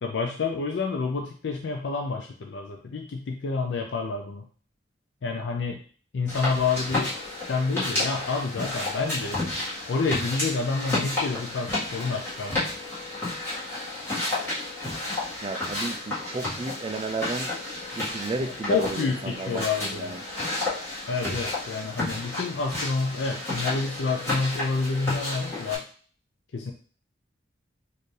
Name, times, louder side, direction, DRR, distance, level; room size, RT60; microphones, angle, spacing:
voice 1, 0.0-4.4 5.2-5.8 6.1-7.1 7.5-9.4 9.9-12.6 18.4-20.2 21.1-25.8 26.5-26.7, left 4 dB, 65° left, 2 dB, 0.4 m, -28 dB
sound 1, 6.3-25.8, left 2 dB, 15° left, 1.8 m, -31 dB
voice 2, 15.4-17.5 17.9-20.2, right 3 dB, 30° right, 8 dB, 0.3 m, -33 dB
4.3 x 2.6 x 3.2 m, 0.44 s
head